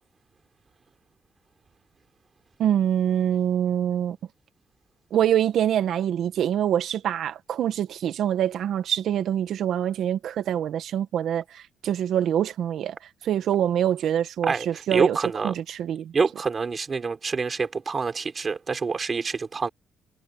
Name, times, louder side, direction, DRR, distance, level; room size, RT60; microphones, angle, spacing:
voice 1, 2.6-4.2 5.1-15.2 15.4-16.1, right 10 dB, 70° right, 1.4 m, -25 dB
voice 2, 14.9-15.5 16.1-19.7, right 5 dB, 35° right, 3.8 m, -26 dB
cardioid pair, 90°, 0 cm